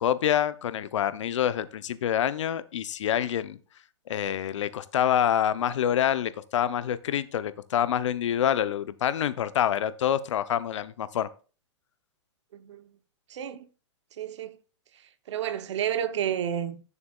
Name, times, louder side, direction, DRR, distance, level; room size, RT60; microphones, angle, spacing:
voice 1, 0.0-3.6 4.1-11.3, left 10 dB, 75° left, 0.6 m, -26 dB
voice 2, 12.5-12.8 13.3-13.6 14.2-14.6 15.3-16.8, right 9 dB, 70° right, 0.8 m, -30 dB
11.0 x 6.8 x 2.3 m
hypercardioid pair, 140°, 16 cm